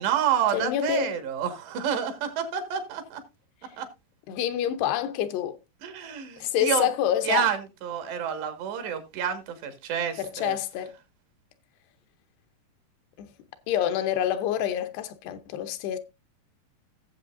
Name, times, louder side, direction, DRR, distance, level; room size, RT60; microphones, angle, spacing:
voice 1, 0.0-3.2 3.8-3.9 5.8-6.9 7.2-10.6, right 8 dB, 80° right, 3.9 m, -29 dB
voice 2, 0.5-1.1 4.3-5.6 6.4-7.5 10.2-10.9 13.2-13.3 13.7-16.0, left 10 dB, 80° left, 2.8 m, -27 dB
17.5 x 7.6 x 2.5 m
omnidirectional pair, 4.8 m